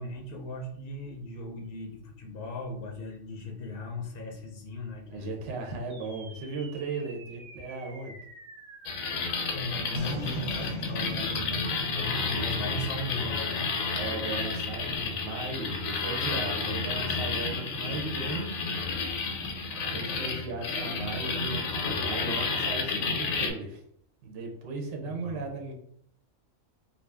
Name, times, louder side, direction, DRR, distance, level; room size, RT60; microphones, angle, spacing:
voice 1, 0.0-5.4 9.5-13.7 25.0-25.5, left 2 dB, 60° left, 1 dB, 0.6 m, -37 dB
voice 2, 5.1-8.1 13.9-18.5 19.8-23.8 24.2-25.7, right 3 dB, 65° right, 2 dB, 1.0 m, -36 dB
sound 1, 5.9-14.5, equal, 40° right, 0.4 m, -42 dB
sound 2, 8.9-23.5, left 4 dB, 90° left, 1.1 m, -31 dB
2.6 x 2.6 x 3.3 m, 0.68 s
omnidirectional pair, 1.4 m